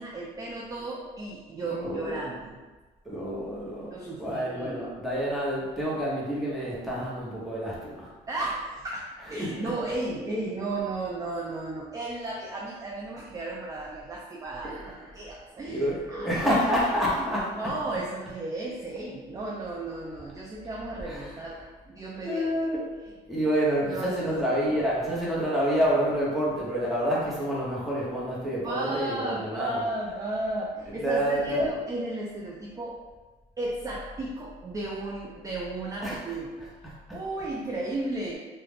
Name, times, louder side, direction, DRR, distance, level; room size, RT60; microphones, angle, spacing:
voice 1, 0.0-2.6 3.9-4.8 8.3-16.3 17.2-17.3 17.6-22.5 23.9-24.2 28.6-33.0 33.6-36.6 37.1-38.4, right 2 dB, 20° right, -2 dB, 0.3 m, -34 dB
voice 2, 1.6-2.2 3.0-3.9 4.2-8.1 9.4-9.5 14.6-15.2 15.7-17.5 21.1-21.3 22.2-29.8 31.0-31.7 36.0-36.2, equal, ahead, -7 dB, 0.8 m, -28 dB
2.3 x 2.1 x 3.3 m, 1.2 s
cardioid pair, 110°, 17 cm